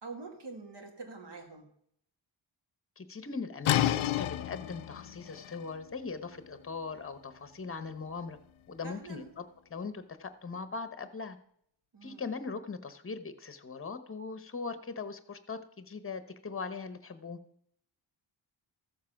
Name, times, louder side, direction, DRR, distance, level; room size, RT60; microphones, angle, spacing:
voice 1, 0.0-1.7 8.8-9.3 11.9-12.2, right 3 dB, 60° right, 2.1 m, -45 dB
voice 2, 3.0-8.4 8.7-9.4 9.7-11.4 12.0-17.4, left 4 dB, 25° left, 0.9 m, -40 dB
sound 1, 3.6-9.3, left 12 dB, 80° left, 0.6 m, -34 dB
14.0 x 7.5 x 5.8 m
wide cardioid pair, 135°, 48 cm